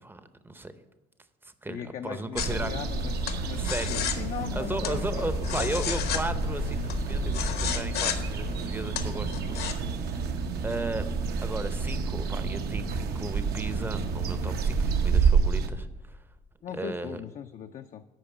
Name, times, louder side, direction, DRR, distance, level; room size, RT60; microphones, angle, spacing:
voice 1, 0.0-0.7 1.4-2.7 3.6-4.1 4.6-10.4 10.6-11.1 11.4-16.2 16.7-17.2, right 2 dB, 10° right, 11 dB, 0.6 m, -36 dB
voice 2, 1.7-3.1 3.4-5.3 5.6-5.7 16.6-18.0, left 8 dB, 45° left, 6 dB, 0.5 m, -38 dB
sound 1, 2.4-9.7, left 9 dB, 70° left, 1.1 m, -33 dB
sound 2, 2.4-15.7, right 5 dB, 70° right, 0.9 m, -29 dB
8.7 x 5.3 x 7.2 m, 1.2 s
cardioid pair, 110°, 17 cm